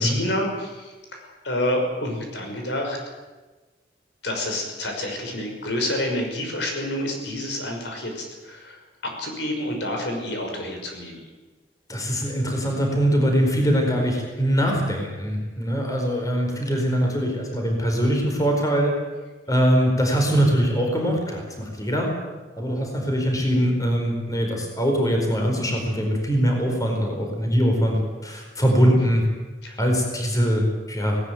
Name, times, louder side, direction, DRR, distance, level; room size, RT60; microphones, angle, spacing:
voice 1, 0.0-3.0 4.2-11.3 29.6-29.8, left 1 dB, 70° left, 2 dB, 5.9 m, -28 dB
voice 2, 11.9-19.0 19.5-22.1 22.6-29.3 29.8-31.2, equal, 20° left, 2 dB, 4.6 m, -22 dB
19.5 x 18.5 x 9.4 m, 1.2 s
head